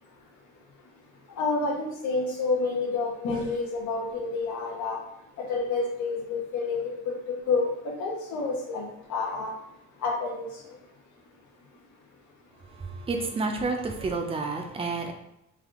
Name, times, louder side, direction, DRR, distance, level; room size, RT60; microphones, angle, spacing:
voice 1, 1.4-5.0 5.4-7.1 7.5-7.7 8.0-9.5 10.0-10.5, left 3 dB, 80° left, -1 dB, 0.7 m, -29 dB
voice 2, 12.8-15.1, right 3 dB, 20° right, 4 dB, 0.4 m, -30 dB
3.4 x 2.5 x 3.6 m, 0.84 s
cardioid pair, 155°, 29 cm